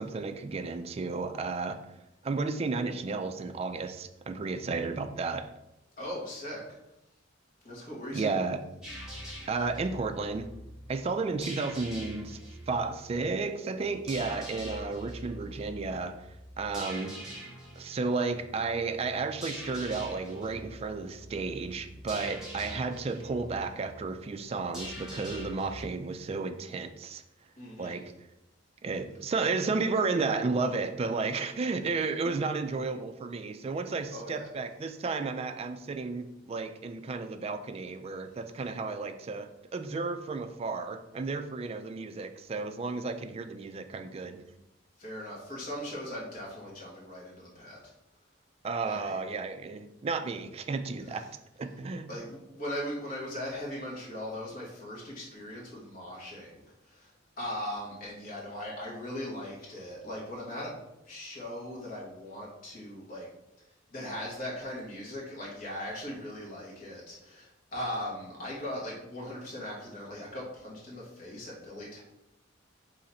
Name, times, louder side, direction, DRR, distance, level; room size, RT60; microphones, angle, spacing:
voice 1, 0.0-1.8 2.2-5.5 8.1-8.6 9.5-10.5 10.9-12.4 12.7-16.2 16.6-17.2 17.8-27.2 27.8-28.0 28.8-44.4 48.6-51.2 51.6-52.1, right 4 dB, 30° right, 8 dB, 0.3 m, -33 dB
voice 2, 6.0-6.6 7.6-8.4 27.6-28.0 34.1-34.5 45.0-47.9 48.8-49.2 51.0-51.2 52.1-56.6 56.8-57.1 57.4-60.8 61.0-63.3 63.9-72.0, left 1 dB, 45° left, -5 dB, 1.7 m, -39 dB
sound 1, 8.8-25.9, equal, 5° right, 1.3 m, -44 dB
3.9 x 3.2 x 4.1 m, 0.89 s
head